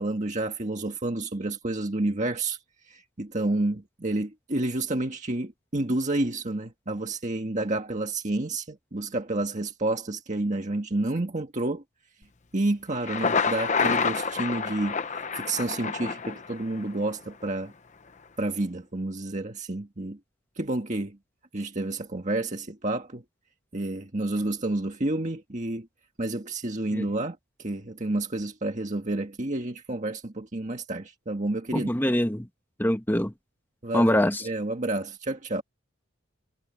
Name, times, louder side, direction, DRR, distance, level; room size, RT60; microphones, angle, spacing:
voice 1, 0.0-2.6 2.9-11.8 12.5-17.7 18.4-20.2 20.6-21.2 21.5-23.2 23.7-25.9 26.2-31.9 33.8-35.6, right 2 dB, 35° right, 1.7 m, -30 dB
Thunder, 12.9-16.9, left 5 dB, 35° left, 0.9 m, -28 dB
voice 2, 31.7-32.5 32.8-33.3 33.9-34.5, left 1 dB, 10° left, 1.4 m, -24 dB
head